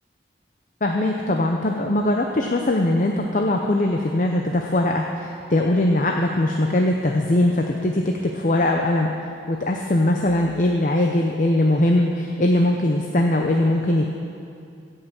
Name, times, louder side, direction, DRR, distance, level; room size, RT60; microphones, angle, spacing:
voice 1, 0.8-9.1 9.5-14.1, left 1 dB, 45° left, 2 dB, 0.6 m, -21 dB
16.5 x 5.6 x 6.9 m, 2.5 s
head